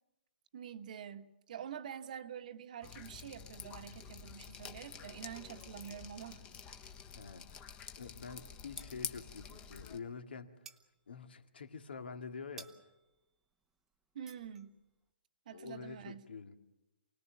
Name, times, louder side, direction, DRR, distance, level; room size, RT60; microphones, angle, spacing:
voice 1, 0.5-6.4 6.7-6.9 14.1-14.8 15.5-16.3, right 9 dB, 50° right, 1.2 m, -47 dB
Drip, 2.8-10.0, left 7 dB, 20° left, 1.1 m, -48 dB
voice 2, 7.1-10.6 11.1-12.7 15.5-16.6, left 5 dB, 75° left, 2.2 m, -47 dB
sound 1, 7.1-8.2 8.4-9.6 9.9-15.1, right 5 dB, 5° right, 0.8 m, -59 dB
28.5 x 19.5 x 7.2 m
hypercardioid pair, 155°, 6 cm